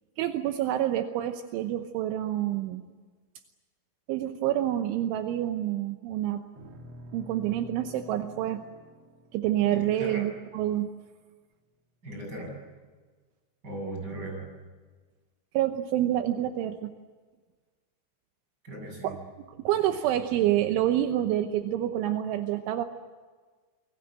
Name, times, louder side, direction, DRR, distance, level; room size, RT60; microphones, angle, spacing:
voice 1, 0.2-2.8 4.1-6.4 7.1-8.6 9.3-10.9 15.5-16.9 19.0-19.2 19.5-22.9, right 12 dB, 80° right, 6 dB, 3.4 m, -27 dB
sound 1, 6.6-11.0, equal, 50° right, 2.0 m, -49 dB
voice 2, 9.7-10.3 12.0-12.6 13.6-14.5 18.6-19.1, right 1 dB, 20° right, 1 dB, 7.9 m, -37 dB
28.5 x 22.5 x 7.6 m, 1.4 s
omnidirectional pair, 5.7 m